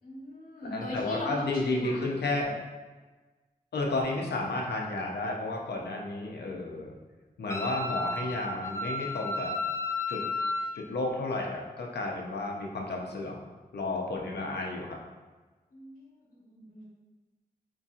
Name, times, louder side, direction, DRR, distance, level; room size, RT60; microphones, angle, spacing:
voice 1, 0.0-2.3 15.7-16.9, left 1 dB, 60° left, -5 dB, 1.3 m, -41 dB
voice 2, 0.7-2.5 3.7-6.9 7.4-9.5 10.1-10.2 10.7-13.4 13.7-15.0, left 2 dB, 85° left, 0 dB, 0.6 m, -32 dB
Wind instrument woodwind instrument, 7.5-10.7, left 2 dB, 15° left, 0.5 m, -33 dB
4.5 x 2.7 x 2.4 m, 1.3 s
cardioid pair, 45°, 17 cm